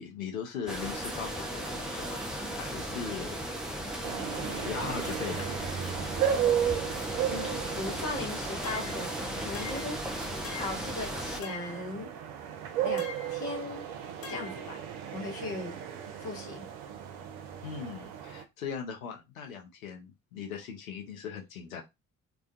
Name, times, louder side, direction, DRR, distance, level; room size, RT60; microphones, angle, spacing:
voice 1, 0.0-2.2 2.5-3.4 4.4-5.5 17.6-21.8, left 7 dB, 80° left, 0.6 m, -39 dB
sound 1, 0.7-11.4, right 1 dB, ahead, 0.3 m, -36 dB
sound 2, 4.0-18.4, right 9 dB, 55° right, 0.5 m, -35 dB
voice 2, 7.3-10.0 10.5-12.1 12.8-13.8 14.3-14.8 15.1-15.8 16.2-16.6, left 2 dB, 55° left, 0.9 m, -38 dB
sound 3, 8.6-9.1 9.5-10.0 10.4-10.9 11.4-11.9 13.0-13.4 14.2-14.7, left 6 dB, 35° left, 0.7 m, -43 dB
2.3 x 2.2 x 2.5 m
figure-of-eight pair, 45°, 41 cm